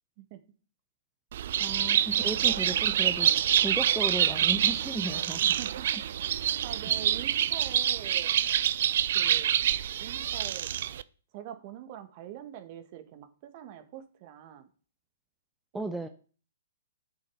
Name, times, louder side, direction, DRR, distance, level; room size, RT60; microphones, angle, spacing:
Bird, 1.3-11.0, right 10 dB, 60° right, 0.6 m, -26 dB
voice 1, 1.6-3.3 3.6-5.4 15.7-16.1, right 2 dB, 5° right, 6 dB, 0.8 m, -35 dB
voice 2, 5.4-8.4 9.1-9.5 10.0-10.7 11.3-14.7 15.9-16.0, right 11 dB, 40° right, 8 dB, 1.9 m, -44 dB
9.7 x 7.6 x 6.5 m, 0.40 s
hypercardioid pair, 130°, 0 cm